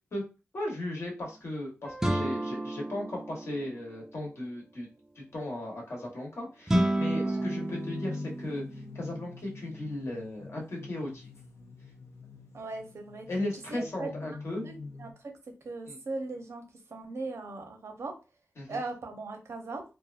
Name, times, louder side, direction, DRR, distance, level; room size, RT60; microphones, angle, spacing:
voice 1, 0.5-4.9 5.2-8.6 8.9-11.3 13.3-14.7 15.9-16.0 18.6-18.8, left 1 dB, 65° left, -1 dB, 1.0 m, -36 dB
sound 1, 1.8-5.0, right 2 dB, 15° left, 0.7 m, -52 dB
sound 2, 2.0-4.0 6.7-8.8, right 1 dB, 10° right, 0.3 m, -30 dB
sound 3, 6.8-15.1, left 3 dB, 85° left, 0.6 m, -45 dB
voice 2, 12.5-13.3 13.7-14.1 14.6-14.7 15.0-15.1 15.6-16.6 16.9-18.1 18.7-19.8, right 3 dB, 75° right, 3 dB, 0.7 m, -38 dB
2.7 x 2.2 x 2.4 m, 0.30 s
wide cardioid pair, 115°, 5 cm